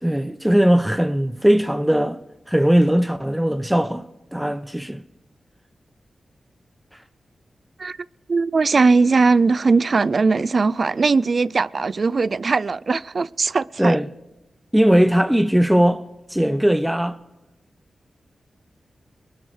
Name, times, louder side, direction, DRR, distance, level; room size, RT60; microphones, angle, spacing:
voice 1, 0.0-2.2 2.5-4.0 4.3-5.0 13.8-14.1 14.7-16.0 16.3-17.2, equal, 5° right, 0.8 m, -19 dB
voice 2, 8.3-14.0, right 4 dB, 55° right, 0.4 m, -19 dB
23.0 x 12.5 x 3.3 m
cardioid pair, 50°, 0 cm